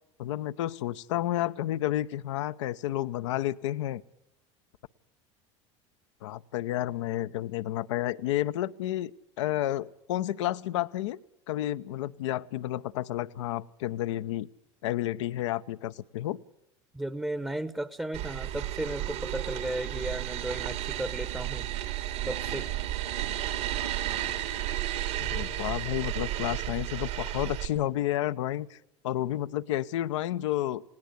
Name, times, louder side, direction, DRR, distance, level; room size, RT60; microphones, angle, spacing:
voice 1, 0.2-4.0 6.2-9.1 9.4-11.2 11.5-14.5 14.8-16.4 25.2-28.8 29.0-30.8, left 14 dB, 75° left, 12 dB, 0.8 m, -31 dB
voice 2, 16.9-21.7 22.3-22.7, right 1 dB, 5° right, 14 dB, 0.9 m, -35 dB
sound 1, 18.1-27.7, right 13 dB, 70° right, 2.8 m, -33 dB
19.5 x 18.0 x 8.1 m, 0.80 s
hypercardioid pair, 75°, 16 cm